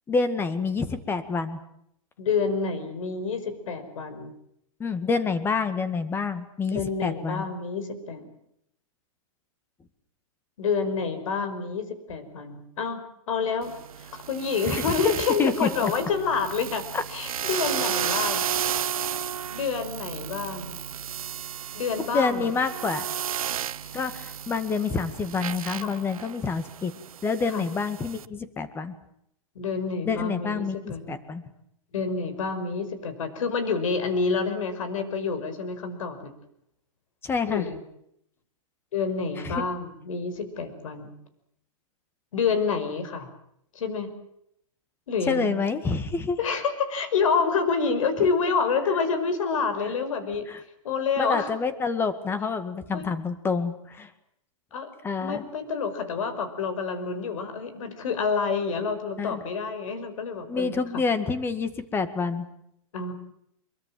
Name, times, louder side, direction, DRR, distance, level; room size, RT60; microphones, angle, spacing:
voice 1, 0.1-1.6 4.8-7.5 14.7-15.1 15.4-15.9 16.9-17.0 22.1-23.1 23.9-26.9 27.2-28.9 30.1-31.4 37.2-37.7 39.4-39.5 45.3-46.4 50.5-50.6 51.2-54.1 55.0-55.4 59.2-59.4 60.5-62.5, left 4 dB, 15° left, 12 dB, 1.8 m, -27 dB
voice 2, 2.2-4.3 6.6-8.3 10.6-13.0 13.3-13.7 14.0-18.5 19.5-20.7 21.7-22.5 25.8-25.9 27.5-27.6 29.6-31.2 31.9-36.3 37.5-37.8 38.9-41.1 42.3-43.3 43.7-44.1 45.1-45.6 46.4-50.5 50.8-51.5 52.9-53.0 54.7-54.9 55.2-61.0 62.9-63.1, left 5 dB, 70° left, 11 dB, 5.4 m, -28 dB
sound 1, 13.6-28.2, right 9 dB, 85° right, 1.0 m, -33 dB
24.0 x 23.0 x 7.7 m, 0.75 s
hypercardioid pair, 150°, 18 cm